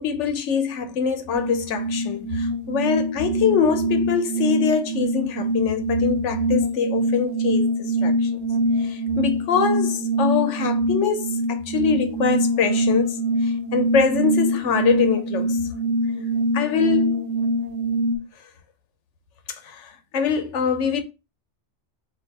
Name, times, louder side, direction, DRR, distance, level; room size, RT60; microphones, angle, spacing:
voice 1, 0.0-8.3 8.8-15.6 16.5-17.2 19.6-21.0, left 6 dB, 85° left, 1.0 m, -24 dB
sound 1, 1.3-18.2, right 1 dB, 90° right, 0.9 m, -24 dB
3.5 x 2.6 x 4.0 m
omnidirectional pair, 1.2 m